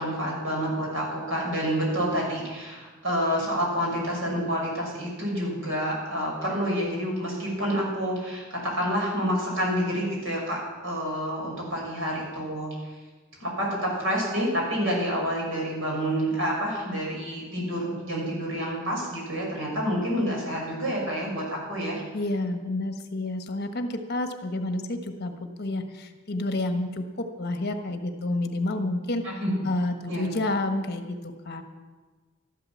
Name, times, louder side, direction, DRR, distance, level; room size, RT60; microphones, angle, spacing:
voice 1, 0.0-12.7 13.4-22.0 29.4-29.5 30.1-30.3, equal, 70° right, -2 dB, 6.4 m, -28 dB
voice 2, 22.1-29.4 29.6-31.6, left 2 dB, 50° left, 6 dB, 1.3 m, -29 dB
13.0 x 12.0 x 7.3 m, 1.3 s
head